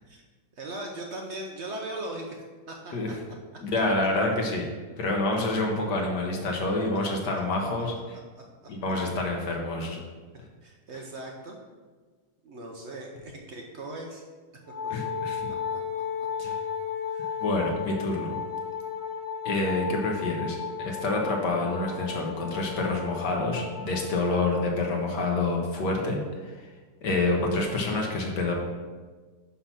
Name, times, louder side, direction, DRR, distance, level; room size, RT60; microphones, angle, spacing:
voice 1, 0.6-2.4 2.7-2.9 8.3-8.4 10.6-11.6 12.4-14.2 15.0-15.1 15.7-15.8 17.1-17.4, right 1 dB, 65° right, 1 dB, 0.7 m, -38 dB
voice 2, 3.6-4.7 5.0-8.2 8.7-10.0 14.9-15.5 16.4-16.6 17.4-18.4 19.4-26.2 27.0-28.5, left 2 dB, 65° left, 0 dB, 1.5 m, -27 dB
Wind instrument woodwind instrument, 14.7-24.7, left 7 dB, 10° right, 0.9 m, -34 dB
5.7 x 5.7 x 5.8 m, 1.4 s
omnidirectional pair, 2.1 m